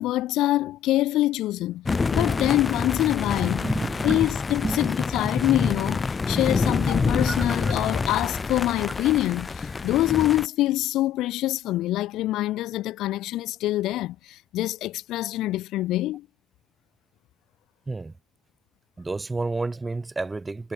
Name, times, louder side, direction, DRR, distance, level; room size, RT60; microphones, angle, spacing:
voice 1, 0.0-1.9 2.1-3.6 4.0-16.3, left 15 dB, 85° left, 2.3 m, -25 dB
sound 1, 1.8-10.5, left 4 dB, 25° left, 4.3 m, -27 dB
voice 2, 3.6-4.3 4.6-4.8 7.3-7.4 17.9-18.1 19.0-20.7, right 3 dB, 15° right, 7.8 m, -30 dB
cardioid pair, 130°, 0 cm